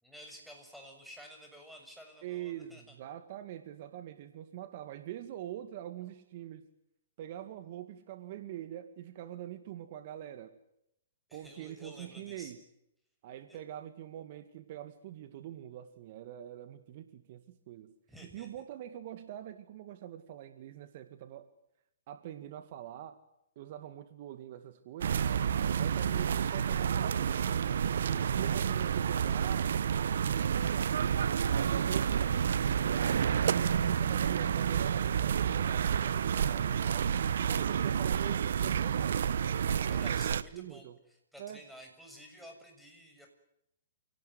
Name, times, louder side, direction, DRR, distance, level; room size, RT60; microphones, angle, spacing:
voice 1, 0.0-2.8 11.3-12.5 13.5-13.6 18.1-18.5 39.8-40.9 41.3-43.3, equal, ahead, 2 dB, 7.1 m, -52 dB
voice 2, 2.2-6.6 7.2-10.6 11.3-12.6 13.2-17.9 18.2-21.5 22.1-23.2 23.6-25.2 25.7-27.6 27.9-31.0 31.5-39.3 39.8-41.0 41.4-41.6, right 12 dB, 50° right, 9 dB, 2.1 m, -44 dB
sound 1, 25.0-40.4, right 8 dB, 70° right, 1.1 m, -29 dB
29.0 x 18.0 x 9.6 m, 0.81 s
hypercardioid pair, 125°, 0 cm